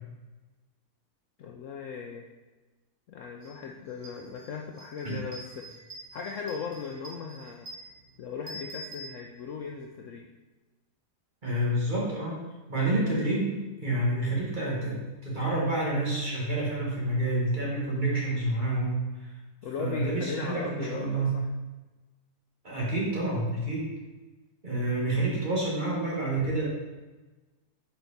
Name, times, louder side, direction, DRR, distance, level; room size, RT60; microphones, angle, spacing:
voice 1, 1.4-2.2 3.1-5.6 6.1-7.7 8.2-10.3 19.6-21.4, left 6 dB, 70° left, 1 dB, 0.8 m, -38 dB
sound 1, 3.4-3.5 3.9-9.7, right 1 dB, 50° right, 1.4 m, -46 dB
voice 2, 11.4-12.4 12.7-13.5 13.8-19.0 19.8-21.4 22.6-23.9 24.6-26.7, right 2 dB, 30° right, -5 dB, 1.6 m, -28 dB
5.8 x 4.4 x 4.0 m, 1.2 s
omnidirectional pair, 1.7 m